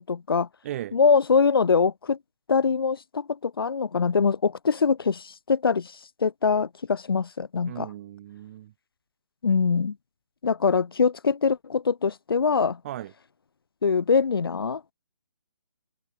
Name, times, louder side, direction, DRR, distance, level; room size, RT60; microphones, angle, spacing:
voice 1, 0.0-0.5 0.9-2.2 2.5-5.9 6.2-7.9 9.4-9.9 10.4-12.8 13.8-14.8, left 5 dB, 70° left, 4.7 m, -23 dB
voice 2, 0.6-1.0 7.7-8.7 12.8-13.1, right 13 dB, 35° right, 4.7 m, -36 dB
hypercardioid pair, 155°, 13 cm